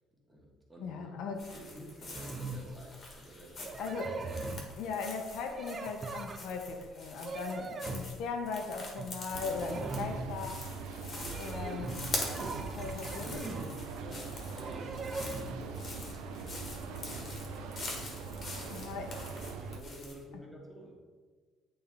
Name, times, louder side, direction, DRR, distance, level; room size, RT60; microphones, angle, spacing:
voice 1, 0.3-1.1 1.5-4.0 7.7-7.8 11.1-11.6 12.7-16.1 16.6-17.7 19.6-21.0, equal, ahead, -4 dB, 1.3 m, -51 dB
voice 2, 0.8-1.5 3.8-4.2 4.7-10.6 11.4-11.9 12.6-13.4 18.7-19.1, left 4 dB, 70° left, 3 dB, 0.7 m, -38 dB
sound 1, 1.4-20.2, left 2 dB, 35° left, 1.2 m, -45 dB
sound 2, 2.1-2.8 3.6-4.7 5.5-6.7 7.1-8.2 8.8-9.2 9.4-10.4 11.2-13.7 14.6-15.7, right 3 dB, 25° right, 0.4 m, -40 dB
sound 3, 9.3-19.8, right 4 dB, 90° right, 0.5 m, -42 dB
8.8 x 3.4 x 3.4 m, 1.5 s
cardioid pair, 150°, 0 cm